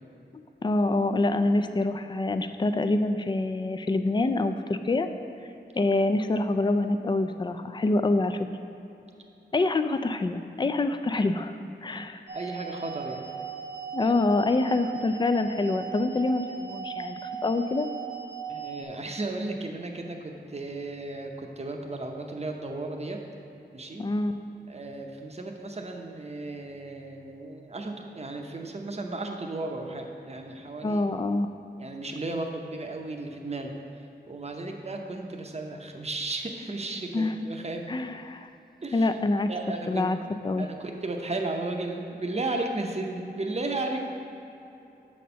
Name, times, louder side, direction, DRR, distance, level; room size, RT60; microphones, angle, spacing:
voice 1, 0.6-5.1 5.8-8.5 9.5-11.5 11.8-12.2 13.9-17.9 24.0-24.4 30.8-31.5 37.1-37.3 37.9-38.5 38.9-39.5 39.9-40.2 40.4-40.7, left 2 dB, 25° left, 9 dB, 0.3 m, -26 dB
voice 2, 12.3-13.3 14.0-14.1 18.5-23.2 23.7-24.0 24.7-31.0 31.8-33.7 34.3-37.8 38.8-39.1 39.5-40.1 40.6-44.1, right 2 dB, 35° right, 2 dB, 0.7 m, -34 dB
sound 1, 12.3-18.8, right 7 dB, 75° right, 0.6 m, -38 dB
7.3 x 4.3 x 5.6 m, 2.8 s
wide cardioid pair, 90°, 18 cm